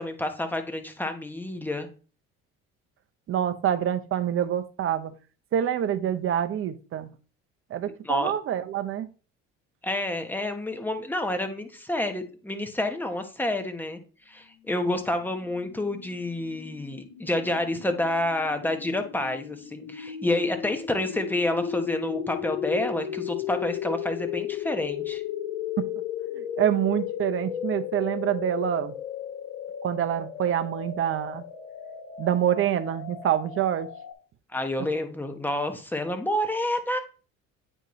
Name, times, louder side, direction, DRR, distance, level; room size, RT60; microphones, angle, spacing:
voice 1, 0.0-1.9 8.0-8.3 9.8-14.0 14.3-25.2 34.5-37.0, left 1 dB, 5° left, 6 dB, 1.0 m, -29 dB
voice 2, 3.3-5.1 5.5-7.1 7.7-9.1 25.8-25.9 26.4-28.9 29.8-31.4 32.2-33.9, right 10 dB, 45° right, 10 dB, 0.7 m, -26 dB
sound 1, 15.3-34.1, left 9 dB, 85° left, 1.2 m, -35 dB
8.9 x 4.4 x 3.1 m, 0.37 s
cardioid pair, 105°, 29 cm